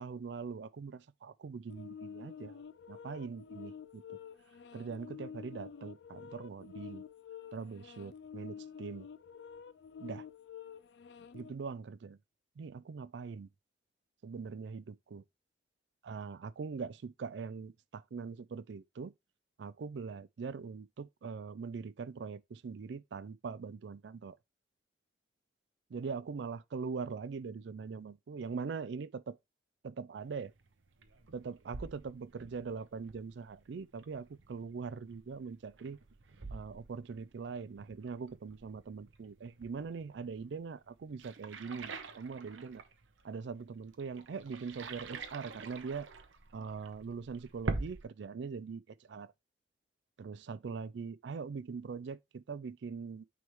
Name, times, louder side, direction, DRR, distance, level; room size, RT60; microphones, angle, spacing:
voice 1, 0.0-2.6 2.9-4.2 4.7-7.0 7.5-9.1 10.0-10.3 11.3-12.2 12.6-13.5 14.2-15.2 16.0-19.1 19.6-24.4 25.9-29.4 29.8-30.5 31.3-36.0 36.5-42.8 43.2-46.1 46.5-49.3 50.2-53.2, right 5 dB, 70° right, 0.4 m, -42 dB
sound 1, 1.7-11.5, left 7 dB, 65° left, 0.4 m, -49 dB
sound 2, 30.2-48.0, right 3 dB, 90° right, 0.8 m, -46 dB
9.2 x 3.5 x 3.1 m
head